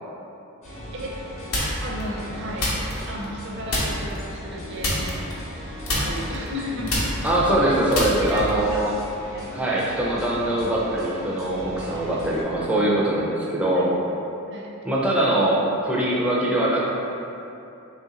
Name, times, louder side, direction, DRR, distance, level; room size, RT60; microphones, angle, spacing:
sound 1, 0.6-12.4, equal, 30° left, 0.8 m, -37 dB
sound 2, 1.5-2.0 2.6-3.4 3.7-4.2 4.8-5.6 5.9-8.6, left 1 dB, 75° left, 0.8 m, -26 dB
voice 1, 1.7-2.8 3.1-5.2 5.9-7.0 7.6-7.7 8.2-8.8 9.3-9.5 11.8-12.1 13.7-13.9 14.5-14.7, equal, 55° right, -2 dB, 0.5 m, -34 dB
voice 2, 7.2-8.9 9.5-13.9 14.8-16.9, right 1 dB, 5° right, -6 dB, 0.5 m, -22 dB
3.4 x 2.4 x 4.1 m, 2.8 s
head